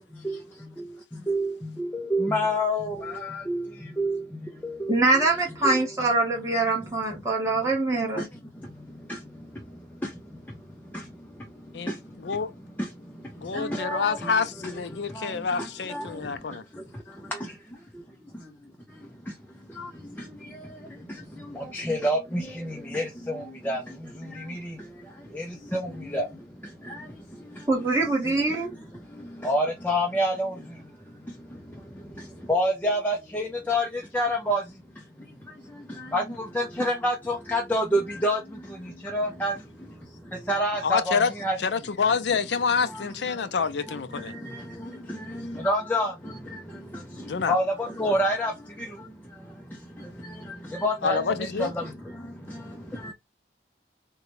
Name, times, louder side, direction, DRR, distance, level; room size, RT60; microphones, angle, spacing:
voice 1, 0.1-5.0 5.6-5.8 7.1-7.2 7.9-12.4 12.8-14.3 14.6-27.9 28.2-41.6 42.8-43.5 43.9-53.1, equal, 10° left, 0.5 m, -31 dB
voice 2, 4.9-8.2 27.7-28.7, right 3 dB, 15° right, 1.1 m, -24 dB
voice 3, 11.7-12.5 13.4-16.6 40.8-41.3 41.6-44.3 47.3-47.6 51.0-51.7, left 5 dB, 75° left, 0.5 m, -27 dB
3.8 x 2.2 x 3.0 m
head